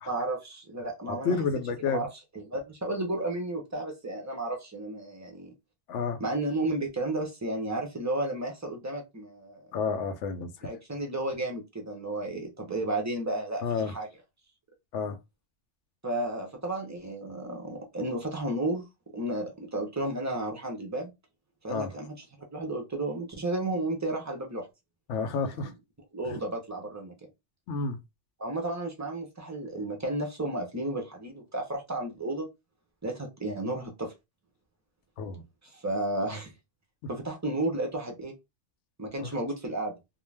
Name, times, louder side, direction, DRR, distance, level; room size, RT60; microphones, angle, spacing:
voice 1, 0.1-1.4 1.8-2.1 2.3-5.5 6.2-9.6 10.6-14.1 16.0-18.9 19.1-21.1 21.6-22.2 22.5-24.7 25.6-25.7 26.1-27.1 28.4-32.5 33.0-34.1 35.7-36.5 37.1-38.3 39.0-39.9, right 2 dB, 25° right, 0.4 m, -32 dB
voice 2, 1.1-2.1 5.9-6.2 9.7-10.5 13.6-13.9 14.9-15.2 21.7-22.0 25.1-25.7 26.3-26.4 27.7-28.0 35.2-35.4 39.2-39.3, left 5 dB, 80° left, 0.9 m, -30 dB
2.4 x 2.2 x 3.2 m
omnidirectional pair, 1.2 m